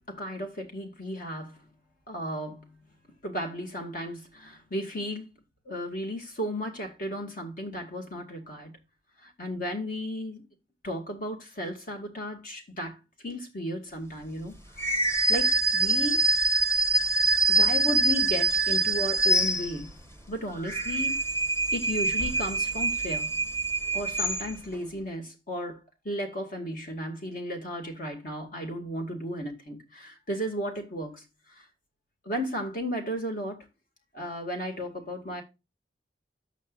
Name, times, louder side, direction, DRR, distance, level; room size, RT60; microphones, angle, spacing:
voice 1, 0.1-1.6 2.1-2.8 3.2-5.3 5.7-8.7 9.2-10.4 10.8-13.0 13.2-14.9 15.3-16.2 17.5-20.0 20.3-21.2 21.7-23.4 23.9-25.8 26.0-31.7 32.2-33.7 34.1-35.4, equal, 50° left, 2.4 m, -34 dB
sound 1, 14.8-20.0 20.5-24.7, right 2 dB, 15° left, 1.3 m, -25 dB
11.5 x 8.4 x 2.5 m
head